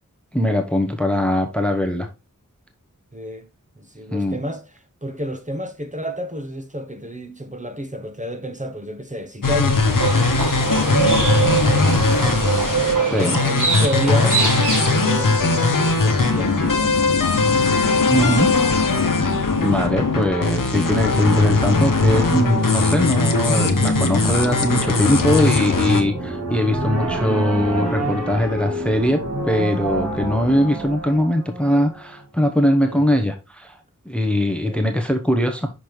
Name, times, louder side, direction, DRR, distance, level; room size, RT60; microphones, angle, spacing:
voice 1, 0.3-2.1 4.1-4.4 13.1-13.4 18.1-18.5 19.1-33.8 34.0-35.7, equal, 5° left, 0.8 m, -21 dB
voice 2, 3.1-3.5 3.8-4.6 5.0-10.3 12.8-14.4 14.9-16.9 25.7-26.1 32.8-33.1 34.6-34.8, equal, 25° right, 0.9 m, -30 dB
sound 1, 9.4-26.0, left 3 dB, 90° left, 0.9 m, -19 dB
Livestock farm animals working animals, 10.0-15.3, right 4 dB, 70° right, 1.6 m, -23 dB
sound 2, 22.1-32.1, right 2 dB, 50° right, 2.4 m, -29 dB
6.0 x 5.2 x 3.1 m
wide cardioid pair, 45°, 32 cm